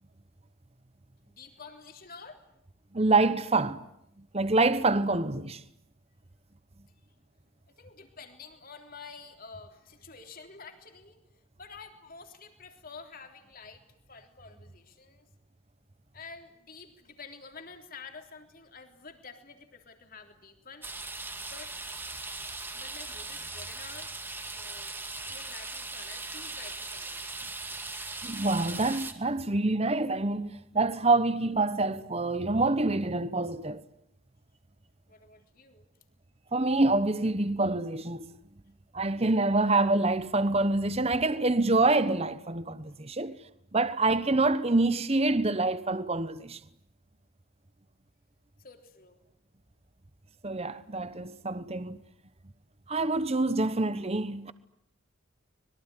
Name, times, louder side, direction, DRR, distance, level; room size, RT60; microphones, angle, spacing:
voice 1, 1.3-2.4 7.8-11.2 11.6-15.3 16.1-20.9 21.5-21.7 22.7-24.1 24.5-25.0 25.2-27.3 35.1-35.8 43.2-43.3 48.6-49.2, left 4 dB, 40° left, 3.5 m, -49 dB
voice 2, 2.9-3.8 4.3-5.6 28.2-33.8 36.5-38.3 38.9-43.4 43.7-46.6 50.4-52.0 52.9-54.5, right 2 dB, 30° right, 1.0 m, -26 dB
sound 1, 20.8-29.1, right 3 dB, 10° right, 2.0 m, -39 dB
25.5 x 22.5 x 10.0 m
head